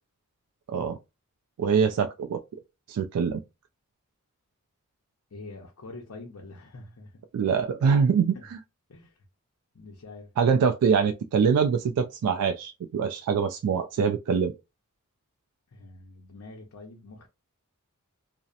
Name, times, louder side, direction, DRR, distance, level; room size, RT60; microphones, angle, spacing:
voice 1, 1.6-2.4 2.9-3.4 7.3-8.6 10.4-14.5, right 6 dB, 90° right, 0.3 m, -24 dB
voice 2, 5.3-7.2 8.3-8.4 8.9-9.2 9.7-10.3 15.7-17.3, left 3 dB, 65° left, 0.6 m, -45 dB
2.7 x 2.0 x 2.4 m
head